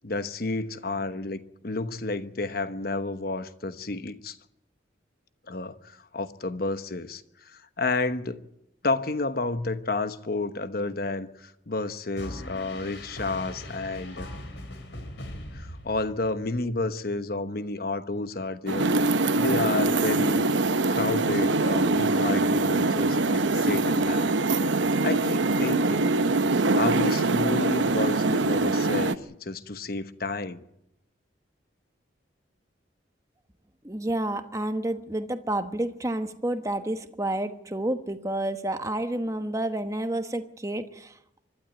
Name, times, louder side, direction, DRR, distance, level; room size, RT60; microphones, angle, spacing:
voice 1, 0.0-4.4 5.5-8.4 8.8-14.3 15.5-20.5 20.9-24.3 25.0-26.1 26.7-30.6, left 3 dB, 55° left, 1.1 m, -31 dB
sound 1, 12.2-16.5, left 1 dB, 85° left, 3.9 m, -40 dB
sound 2, 18.7-29.1, right 2 dB, 90° right, 0.8 m, -23 dB
voice 2, 33.8-41.1, right 1 dB, 20° right, 1.2 m, -30 dB
25.5 x 12.5 x 9.2 m
head